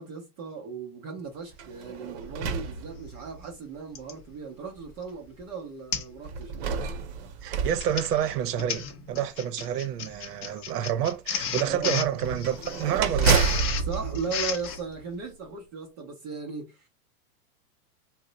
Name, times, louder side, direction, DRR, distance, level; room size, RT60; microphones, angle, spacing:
voice 1, 0.0-6.5 11.7-12.0 13.9-16.9, right 5 dB, 20° right, 0.3 m, -37 dB
sound 1, 1.5-3.5 4.3-4.4 6.2-8.8 12.2-15.3, right 5 dB, 50° right, 0.7 m, -30 dB
Printer, 2.8-2.9 3.9-4.2 4.8-5.0 5.3-5.4 5.9-6.2 6.5-6.8 7.6-14.8, left 7 dB, 30° left, 0.5 m, -33 dB
voice 2, 7.4-13.5, right 10 dB, 90° right, 0.7 m, -29 dB
2.8 x 2.0 x 3.8 m
supercardioid pair, 140°, 46 cm